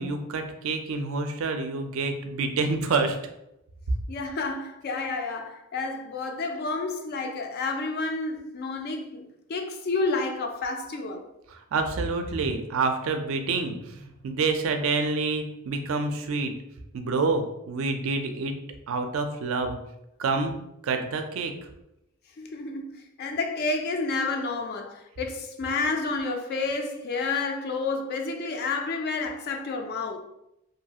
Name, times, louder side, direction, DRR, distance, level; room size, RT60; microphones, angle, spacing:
voice 1, 0.0-3.2 11.5-16.5 16.9-18.5 18.9-19.8 20.2-20.5 20.8-21.5, right 4 dB, 65° right, 0.4 m, -27 dB
voice 2, 4.1-11.2 22.4-30.2, left 3 dB, 45° left, 0.3 m, -30 dB
2.6 x 2.3 x 2.7 m
head